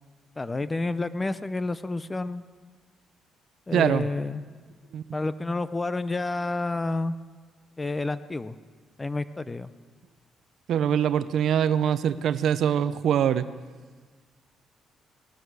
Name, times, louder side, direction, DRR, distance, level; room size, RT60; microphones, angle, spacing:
voice 1, 0.4-2.4 3.7-4.4 5.1-7.2 7.8-8.6 9.0-9.7, left 2 dB, 20° left, 14 dB, 0.6 m, -29 dB
voice 2, 3.7-4.1 4.9-5.0 10.7-13.5, right 9 dB, 70° right, 14 dB, 0.5 m, -23 dB
18.0 x 12.5 x 4.8 m, 1.5 s
cardioid pair, 90°, 0 cm